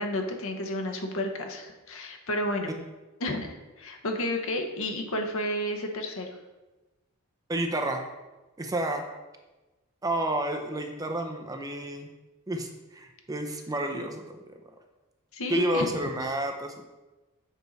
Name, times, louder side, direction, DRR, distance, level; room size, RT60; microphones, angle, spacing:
voice 1, 0.0-2.7 3.2-6.3 15.3-15.9, left 1 dB, 65° left, 3 dB, 1.0 m, -31 dB
voice 2, 7.5-8.0 8.6-9.0 10.0-12.1 12.5-14.6 15.5-16.8, right 1 dB, 15° right, 4 dB, 0.5 m, -30 dB
7.4 x 4.5 x 4.0 m, 1.1 s
head